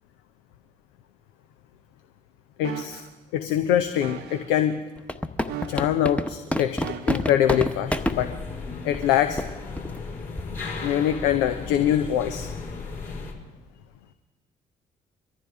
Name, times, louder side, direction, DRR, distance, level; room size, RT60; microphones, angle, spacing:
voice 1, 2.6-3.0 3.3-4.8 5.7-8.3 8.8-9.4 10.8-12.5, left 10 dB, 75° left, 9 dB, 0.7 m, -24 dB
sound 1, 2.6-3.1 4.0-4.5 5.5-6.1 6.8-7.4 8.2-8.3, right 9 dB, 65° right, 0.8 m, -37 dB
sound 2, 5.0-8.2 8.9-9.0 9.4-9.5 9.8-10.0 10.4-10.6, left 1 dB, 5° left, 1.0 m, -27 dB
sound 3, 7.8-13.3, left 4 dB, 50° left, 4.6 m, -35 dB
23.5 x 14.5 x 3.6 m, 1.2 s
figure-of-eight pair, 40°, 19 cm